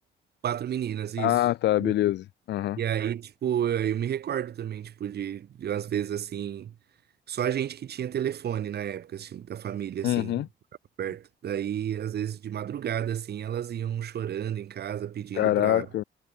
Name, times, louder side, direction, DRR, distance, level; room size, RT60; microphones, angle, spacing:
voice 1, 0.4-1.4 1.8-1.9 2.8-6.7 7.3-10.4 11.0-15.9, right 10 dB, 55° right, 1.0 m, -31 dB
voice 2, 1.2-2.8 10.0-10.5 15.3-16.0, left 14 dB, 60° left, 0.4 m, -25 dB
cardioid pair, 90°, 20 cm